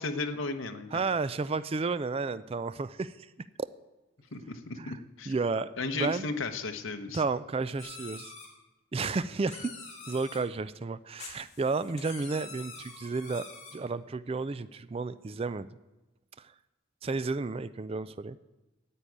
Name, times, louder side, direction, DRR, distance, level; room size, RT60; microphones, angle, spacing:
voice 1, 0.0-1.0 4.3-5.3 5.8-7.2, left 3 dB, 70° left, 7 dB, 1.1 m, -34 dB
voice 2, 0.9-3.3 4.8-5.0 5.3-5.7 6.0-6.3 7.1-8.3 8.9-9.7 10.1-13.4 13.7-15.7 16.4-16.5 17.0-18.4, right 4 dB, 25° right, 15 dB, 0.3 m, -32 dB
sound 1, 7.8-8.5 9.0-10.4 11.2-13.7, left 4 dB, 35° left, 3.8 m, -46 dB
9.8 x 8.6 x 9.3 m, 1.1 s
head